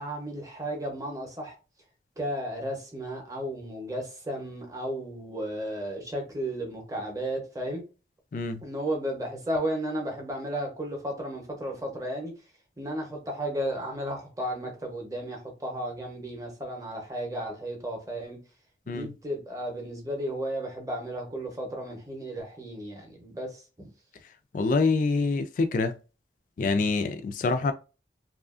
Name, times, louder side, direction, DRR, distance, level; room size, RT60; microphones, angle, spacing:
voice 1, 0.0-1.5 2.2-7.8 8.6-12.3 12.8-18.4 18.9-23.9, right 1 dB, 20° right, 0.7 m, -34 dB
voice 2, 8.3-8.6 18.9-19.1 24.5-26.0 26.6-27.7, left 3 dB, 50° left, 0.3 m, -26 dB
2.7 x 2.4 x 2.4 m
head